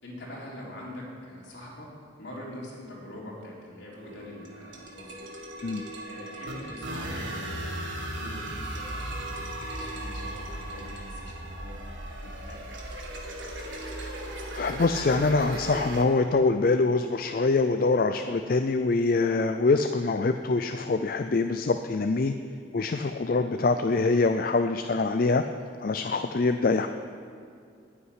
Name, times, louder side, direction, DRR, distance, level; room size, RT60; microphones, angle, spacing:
voice 1, 0.0-1.9 2.2-5.2 6.0-11.8 12.2-12.7 23.7-23.9, left 1 dB, 70° left, -4 dB, 3.5 m, -44 dB
sound 1, 4.0-16.0, right 1 dB, 80° right, 1.9 m, -37 dB
voice 2, 14.6-22.3 22.7-25.4 25.8-26.9, left 3 dB, 50° left, 8 dB, 0.4 m, -24 dB
9.8 x 8.5 x 9.8 m, 2.4 s
head